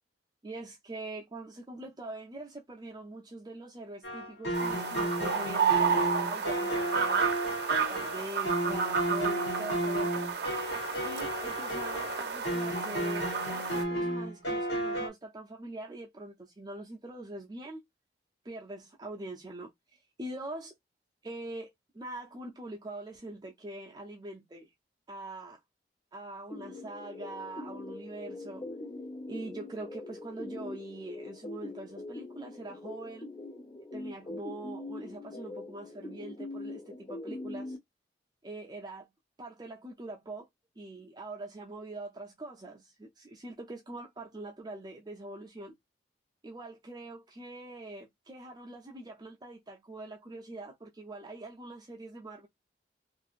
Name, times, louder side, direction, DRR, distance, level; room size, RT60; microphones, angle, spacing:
voice 1, 0.4-7.3 7.7-10.3 10.7-17.8 18.4-20.7 21.2-24.7 25.1-25.6 26.1-28.7 29.3-33.3 33.9-37.8 38.4-39.1 39.4-40.5 40.8-45.8 46.4-52.5, right 2 dB, 25° right, 0.5 m, -43 dB
sound 1, 4.0-15.1, equal, 85° left, 1.1 m, -33 dB
sound 2, 4.5-13.8, right 6 dB, 65° right, 0.6 m, -31 dB
sound 3, 26.5-37.8, left 2 dB, 25° left, 0.5 m, -42 dB
2.8 x 2.5 x 2.4 m
head